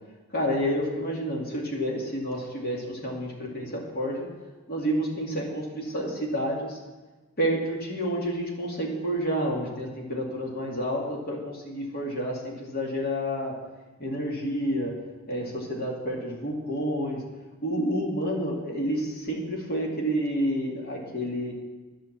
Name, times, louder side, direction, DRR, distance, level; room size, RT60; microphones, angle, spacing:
voice 1, 0.3-4.3 4.7-6.8 7.4-13.5 14.0-14.9 15.3-17.2 17.6-21.5, equal, 45° left, -2 dB, 2.4 m, -29 dB
11.5 x 6.6 x 7.3 m, 1.2 s
head